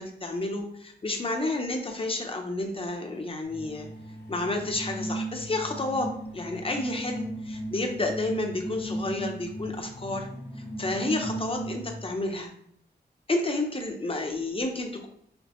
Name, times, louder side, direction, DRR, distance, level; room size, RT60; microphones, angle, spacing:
voice 1, 0.0-3.9 4.3-10.3 10.8-12.5 13.3-15.1, left 2 dB, 30° left, 3 dB, 0.8 m, -30 dB
sound 1, 3.5-12.1, right 1 dB, 75° left, 1.5 m, -37 dB
5.2 x 3.2 x 3.0 m, 0.70 s
wide cardioid pair, 135°, 17 cm